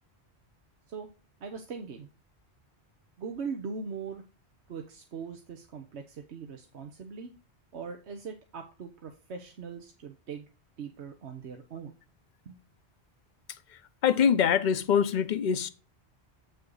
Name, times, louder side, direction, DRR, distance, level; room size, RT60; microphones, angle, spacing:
voice 1, 1.4-2.1 3.2-4.2 4.7-7.3 7.7-10.5 10.8-11.9 12.5-12.6, right 5 dB, 85° right, 1.3 m, -40 dB
voice 2, 14.0-15.7, left 7 dB, 50° left, 0.8 m, -24 dB
8.3 x 6.3 x 3.9 m
omnidirectional pair, 1.1 m